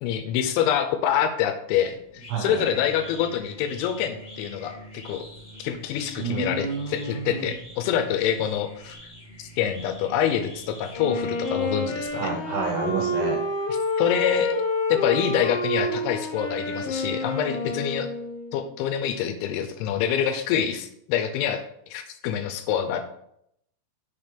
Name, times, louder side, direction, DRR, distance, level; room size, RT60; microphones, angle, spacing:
voice 1, 0.0-5.2 5.6-9.0 9.6-12.3 13.7-14.6 14.9-18.1 18.5-21.6 21.9-23.1, left 9 dB, 85° left, 7 dB, 2.9 m, -26 dB
sound 1, 1.7-12.1, equal, 40° left, 0.9 m, -45 dB
voice 2, 2.3-2.6 6.2-7.5 12.1-13.4, right 4 dB, 75° right, 0 dB, 2.6 m, -29 dB
Wind instrument woodwind instrument, 10.9-18.6, left 1 dB, 65° left, 2.7 m, -28 dB
6.7 x 4.3 x 5.1 m, 0.74 s
omnidirectional pair, 5.6 m